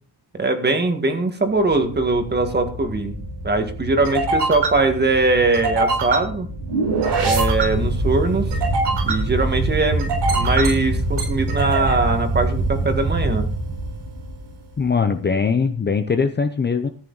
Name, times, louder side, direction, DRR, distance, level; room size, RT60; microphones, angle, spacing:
voice 1, 0.4-3.2 3.4-6.5 7.2-8.5 9.0-13.4, right 3 dB, 25° right, 6 dB, 1.8 m, -21 dB
sound 1, 1.9-14.5, right 2 dB, 80° right, 7.1 m, -23 dB
voice 2, 14.8-16.9, left 5 dB, 25° left, 7 dB, 0.7 m, -21 dB
14.5 x 9.8 x 4.0 m, 0.43 s
wide cardioid pair, 170°, 42 cm